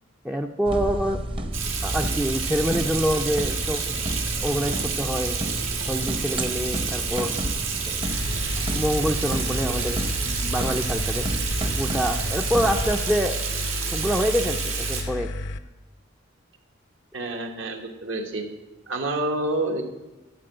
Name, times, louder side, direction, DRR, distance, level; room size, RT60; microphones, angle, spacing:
voice 1, 0.2-1.2 1.8-3.8 4.4-5.4 5.9-7.3 7.9-8.0 8.7-11.3 11.8-13.4 13.9-15.3, equal, 5° right, 3 dB, 0.4 m, -26 dB
sound 1, 0.6-12.9, right 1 dB, 25° right, 0.8 m, -31 dB
Water tap faucet / Sink (filling or washing), 1.5-15.0, right 6 dB, 85° right, 1.6 m, -30 dB
sound 2, 8.0-15.6, left 2 dB, 60° left, 0.5 m, -32 dB
voice 2, 17.1-18.5 18.9-19.8, right 2 dB, 70° right, 4 dB, 1.3 m, -28 dB
11.5 x 4.6 x 7.8 m, 1.0 s
head